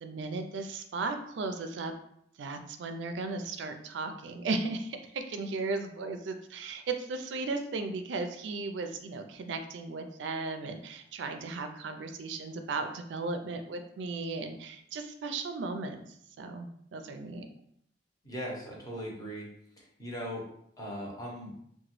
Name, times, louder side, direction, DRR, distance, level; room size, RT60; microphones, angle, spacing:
voice 1, 0.0-1.9 2.4-16.0 16.4-17.5, right 3 dB, 70° right, 7 dB, 0.4 m, -36 dB
voice 2, 18.2-19.5 20.0-20.4 20.8-21.5, equal, 20° left, -2 dB, 0.7 m, -38 dB
2.9 x 2.2 x 3.0 m, 0.70 s
head